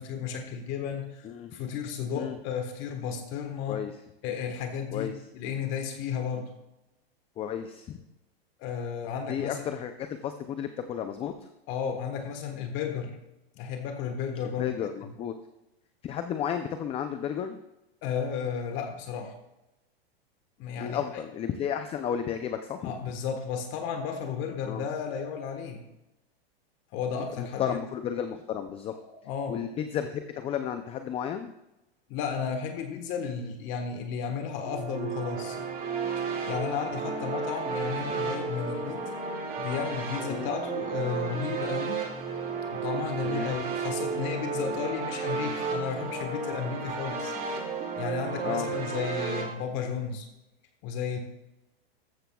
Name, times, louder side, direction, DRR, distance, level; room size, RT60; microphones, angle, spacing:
voice 1, 0.0-3.8 4.2-6.5 8.6-9.7 11.7-13.2 13.6-14.7 18.0-19.3 20.6-21.2 22.8-25.8 26.9-27.8 29.0-29.6 32.1-35.6 36.5-39.0 39.6-42.0 42.7-47.3 48.0-50.3 50.8-51.2, left 7 dB, 40° left, 5 dB, 1.4 m, -33 dB
voice 2, 1.2-1.6 2.1-2.4 3.7-3.9 4.9-5.1 7.4-8.0 9.3-11.3 14.6-15.3 16.0-17.6 20.8-22.9 24.7-24.9 27.4-28.9 29.5-31.5 40.3-40.5 43.2-43.5 48.4-48.7, left 9 dB, 20° left, 8 dB, 0.5 m, -33 dB
sound 1, 34.6-49.4, right 5 dB, 30° right, 2.3 m, -33 dB
14.0 x 12.5 x 2.3 m, 0.93 s
hypercardioid pair, 135°, 31 cm